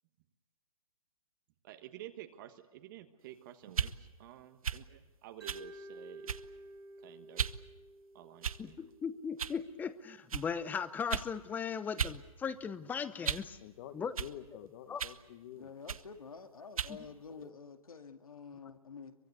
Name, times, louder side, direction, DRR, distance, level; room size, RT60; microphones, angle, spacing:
voice 1, 1.6-6.3 7.0-7.5 8.1-8.8, right 13 dB, 35° right, 8 dB, 1.4 m, -51 dB
sound 1, 3.7-3.9 4.6-4.8 5.5-5.7 6.3-6.6 7.4-7.6 8.4-8.8 9.4-9.6 10.3-10.5 11.1-11.3 12.0-12.2 12.5-13.5 14.2-14.3 15.0-15.2 15.9-16.1 16.8-17.0, right 7 dB, 85° right, 1.0 m, -36 dB
Mallet percussion, 5.4-9.5, right 1 dB, 55° right, 3.7 m, -52 dB
voice 2, 8.6-13.6 13.9-14.1 14.9-15.0 16.9-17.0, left 6 dB, 10° left, 14 dB, 0.8 m, -38 dB
voice 3, 13.6-15.7, left 11 dB, 40° left, 9 dB, 1.8 m, -49 dB
voice 4, 15.6-19.2, left 5 dB, 90° left, 6 dB, 2.3 m, -49 dB
23.5 x 23.0 x 8.2 m, 1.1 s
hypercardioid pair, 145°, 18 cm